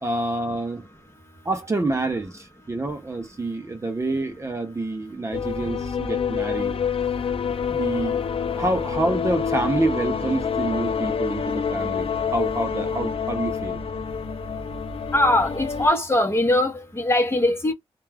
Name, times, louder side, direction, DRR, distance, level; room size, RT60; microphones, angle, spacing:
voice 1, 0.0-0.9 1.4-6.8 7.7-8.2 8.6-13.8, right 2 dB, 25° right, 0.5 m, -27 dB
sound 1, 5.3-15.9, left 6 dB, 60° left, 0.4 m, -27 dB
voice 2, 15.1-17.7, left 1 dB, 25° left, 0.8 m, -21 dB
2.3 x 2.2 x 3.2 m
wide cardioid pair, 150°, 11 cm